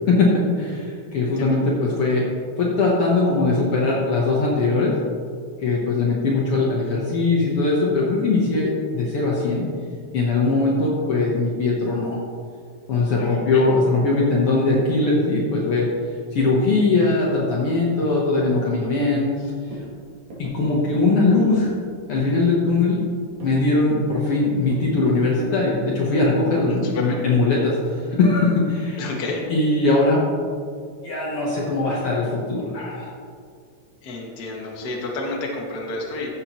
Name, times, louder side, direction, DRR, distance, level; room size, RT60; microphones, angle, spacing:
voice 1, 0.1-2.2 2.6-4.9 5.6-9.7 10.1-12.2 12.9-15.9 16.3-19.5 20.4-21.7 22.1-23.0 23.4-29.0 29.5-30.2 31.0-33.1, left 3 dB, 60° left, -4 dB, 1.8 m, -20 dB
voice 2, 1.2-1.5 13.2-13.6 26.7-27.2 29.0-29.4 34.0-36.3, left 2 dB, 40° left, -2 dB, 1.6 m, -30 dB
sound 1, 19.0-19.4 19.7-19.9 20.3-20.6 20.9-21.2 21.5-21.8 22.2-22.4 22.8-23.6 24.0-24.4 24.7-24.9 25.2-26.2 26.6-26.8 27.2-27.4 27.8-28.1, right 1 dB, 65° right, 3.2 m, -40 dB
15.0 x 7.3 x 3.0 m, 2.2 s
omnidirectional pair, 3.4 m